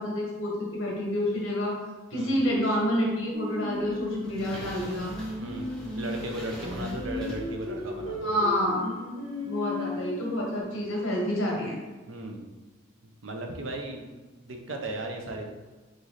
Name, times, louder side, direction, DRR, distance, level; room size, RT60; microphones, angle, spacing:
voice 1, 0.0-1.8 2.1-5.1 8.2-8.9 9.5-11.8, equal, 70° left, -2 dB, 1.3 m, -28 dB
Singing, 3.3-10.6, left 1 dB, 90° right, 1.5 m, -35 dB
sound 1, 3.7-8.7, equal, 5° left, 0.7 m, -43 dB
voice 2, 5.4-5.7 6.0-8.3 12.0-12.4 13.2-14.1 14.4-15.4, right 1 dB, 65° right, 3 dB, 0.6 m, -36 dB
3.7 x 3.2 x 4.0 m, 1.3 s
head